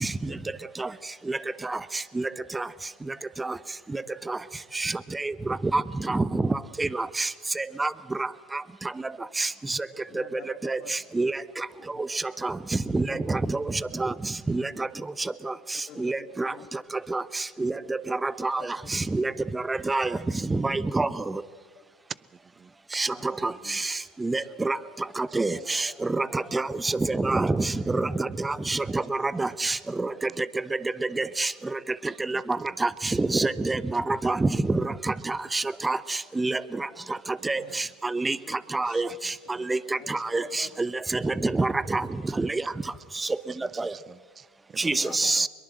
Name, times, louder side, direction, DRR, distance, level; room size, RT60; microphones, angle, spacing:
voice 1, 6.1-6.5 6.8-7.3 7.6-7.9 9.4-9.8 10.6-10.8 11.1-11.3 12.4-12.5 12.9-13.6 14.0-14.1 14.5-14.9 15.5-15.6 16.0-16.5 17.1-17.2 17.6-17.7 18.2-18.6 18.9-20.1 20.5-21.1 22.9-23.1 23.4-23.8 24.2-24.8 25.2-30.1 31.2-31.5 32.3-32.4 32.8-36.0 36.4-36.6 37.4-37.8 38.1-38.4 38.7-39.1 39.7-39.8 40.1-42.1 42.4-42.6 43.8-43.9 44.8-45.5, right 3 dB, 15° right, 16 dB, 1.0 m, -26 dB
voice 2, 10.1-11.1 11.9-12.0 15.7-16.8 18.4-18.9 23.1-23.3 23.6-23.7 25.5-26.0 37.5-37.8 38.4-39.1 40.0-40.2 40.6-40.7 41.3-41.4 44.9-45.5, left 11 dB, 55° left, 10 dB, 1.7 m, -48 dB
voice 3, 32.0-32.6 37.6-37.7 39.2-39.7 42.2-42.3 43.5-45.5, right 6 dB, 30° right, 22 dB, 0.6 m, -49 dB
23.5 x 22.5 x 7.7 m, 1.5 s
hypercardioid pair, 85°, 0 cm